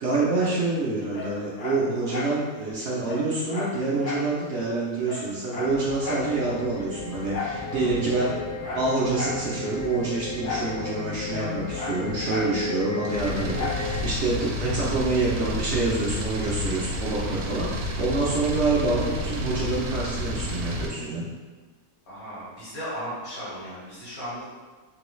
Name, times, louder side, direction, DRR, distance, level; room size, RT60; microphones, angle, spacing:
voice 1, 0.0-8.3 8.7-17.7 18.0-21.3, right 3 dB, 60° right, -5 dB, 0.8 m, -27 dB
Dog, 1.1-2.4 2.7-2.8 3.0-4.3 4.7-4.8 5.0-6.3 7.3-7.6 8.1-9.4 10.4-10.8 11.0-12.6 13.5-13.9 14.4-14.5, left 3 dB, 60° left, 0.9 m, -34 dB
sound 1, 5.6-14.0, left 3 dB, 25° left, 0.4 m, -35 dB
voice 2, 7.6-8.0 22.1-24.4, equal, 80° left, -9 dB, 2.0 m, -36 dB
sound 2, 13.1-20.9, left 1 dB, 85° right, 1.1 m, -30 dB
3.8 x 2.3 x 3.0 m, 1.4 s
omnidirectional pair, 1.5 m